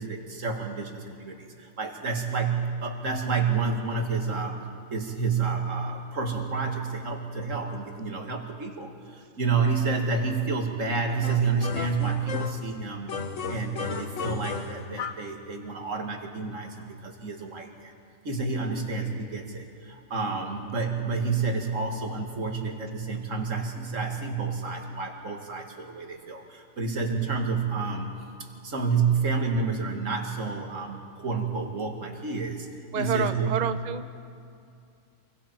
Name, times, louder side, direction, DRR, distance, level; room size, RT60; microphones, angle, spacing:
voice 1, 0.0-4.6 4.9-13.2 13.5-17.9 18.2-28.1 28.6-32.7 33.0-33.6, right 4 dB, 75° right, 2 dB, 2.4 m, -29 dB
sound 1, 11.2-12.7 13.1-15.3, left 5 dB, 70° left, 1.4 m, -34 dB
voice 2, 32.9-34.1, right 6 dB, 45° right, 10 dB, 0.7 m, -29 dB
28.0 x 22.0 x 4.6 m, 2.5 s
omnidirectional pair, 1.3 m